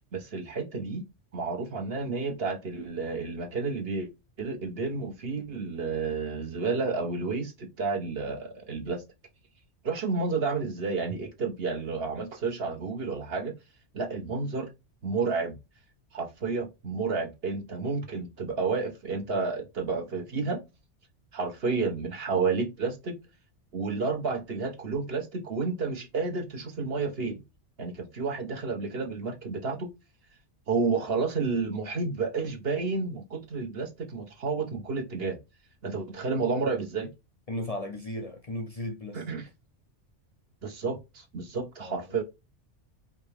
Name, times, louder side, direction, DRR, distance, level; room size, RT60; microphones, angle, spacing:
voice 1, 0.1-1.0 1.3-4.1 4.4-9.0 9.8-13.5 13.9-14.7 15.0-15.6 16.1-20.6 21.3-23.1 23.7-27.4 27.8-29.9 30.7-35.4 35.8-37.1 39.1-39.4 40.6-42.2, right 4 dB, 55° right, 1.3 m, -31 dB
voice 2, 37.5-39.2 41.8-42.2, left 1 dB, 35° left, 0.7 m, -36 dB
4.9 x 2.9 x 3.5 m
omnidirectional pair, 1.2 m